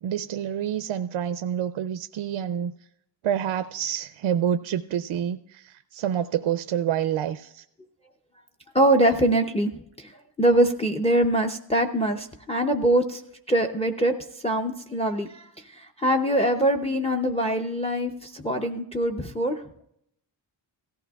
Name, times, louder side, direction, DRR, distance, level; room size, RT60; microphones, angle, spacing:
voice 1, 0.0-2.7 3.2-7.6, right 9 dB, 80° right, 10 dB, 0.5 m, -28 dB
voice 2, 8.7-9.7 10.0-10.1 10.4-13.2 13.5-14.1 14.4-15.5 15.7-19.6, right 1 dB, 15° left, 6 dB, 0.5 m, -23 dB
17.5 x 14.5 x 2.3 m, 0.75 s
wide cardioid pair, 165°, 48 cm